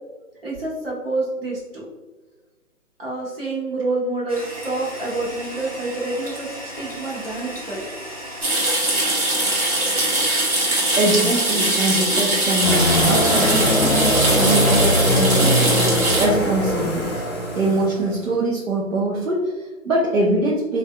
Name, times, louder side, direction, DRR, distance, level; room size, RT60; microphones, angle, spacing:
voice 1, 0.4-1.9 3.0-7.9, right 2 dB, 45° right, -4 dB, 1.1 m, -27 dB
Toilet flush, 4.3-16.9, equal, 25° right, 0.5 m, -35 dB
sound 1, 8.4-16.3, right 1 dB, 85° right, 1.3 m, -21 dB
voice 2, 11.0-15.8 16.2-17.1 17.5-20.8, right 1 dB, 65° right, -5 dB, 0.9 m, -23 dB
sound 2, 12.6-18.1, equal, 20° left, 0.6 m, -20 dB
3.3 x 2.6 x 2.2 m, 1.2 s
figure-of-eight pair, 155°, 42 cm